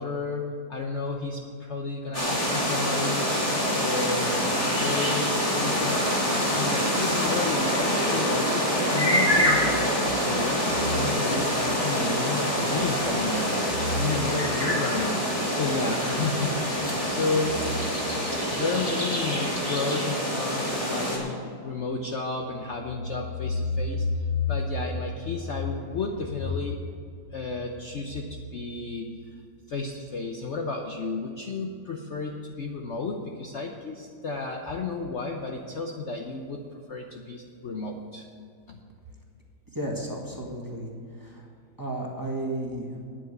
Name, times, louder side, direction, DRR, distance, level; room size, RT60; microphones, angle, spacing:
voice 1, 0.0-3.3 3.7-5.3 5.5-13.5 13.9-15.2 15.5-17.6 18.3-26.8 27.3-29.3 29.7-38.2 38.7-38.8, left 3 dB, 50° left, 2 dB, 0.9 m, -31 dB
sound 1, 2.1-21.2, equal, 20° left, 2.9 m, -26 dB
voice 2, 39.7-40.9 41.2-41.5 41.8-43.0, right 1 dB, 10° right, -2 dB, 1.6 m, -33 dB
9.6 x 8.8 x 7.9 m, 2.3 s
omnidirectional pair, 1.8 m